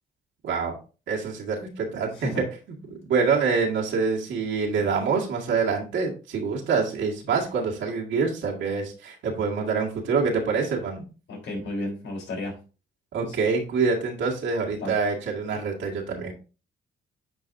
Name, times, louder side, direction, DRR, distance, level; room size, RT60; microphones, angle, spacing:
voice 1, 0.4-0.8 1.1-2.4 2.9-11.0 13.1-16.3, right 5 dB, 75° right, -2 dB, 1.9 m, -26 dB
voice 2, 11.3-12.5 13.2-13.4 14.8-14.9, left 2 dB, 75° left, -2 dB, 3.7 m, -33 dB
9.4 x 4.0 x 2.6 m, 0.34 s
cardioid pair, 90°, 20 cm